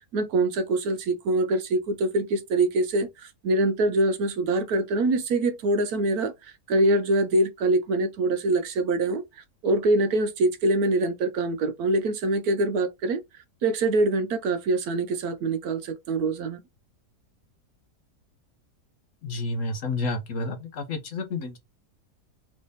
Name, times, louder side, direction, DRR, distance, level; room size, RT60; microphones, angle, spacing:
voice 1, 0.0-3.1 3.4-6.3 6.7-9.2 9.6-13.2 13.6-16.6, right 2 dB, 70° right, 1.1 m, -24 dB
voice 2, 19.2-21.6, left 2 dB, 60° left, 1.0 m, -30 dB
3.3 x 3.2 x 4.0 m
omnidirectional pair, 1.7 m